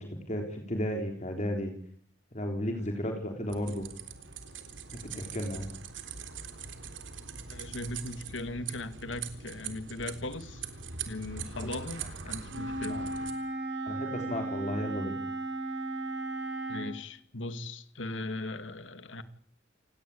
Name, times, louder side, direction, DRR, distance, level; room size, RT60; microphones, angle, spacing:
voice 1, 0.0-1.7 2.3-3.9 4.9-5.7 11.6-11.7 12.0-12.1 12.9-13.0 13.9-15.2, equal, 40° left, 3 dB, 3.5 m, -34 dB
sound 1, 3.5-13.3, right 6 dB, 90° right, 3.6 m, -42 dB
voice 2, 7.5-10.7 11.1-13.0 16.7-19.2, left 2 dB, 90° left, 11 dB, 2.2 m, -38 dB
Wind instrument woodwind instrument, 12.5-17.0, right 2 dB, 65° right, 5.4 m, -35 dB
28.5 x 18.5 x 8.5 m, 0.63 s
head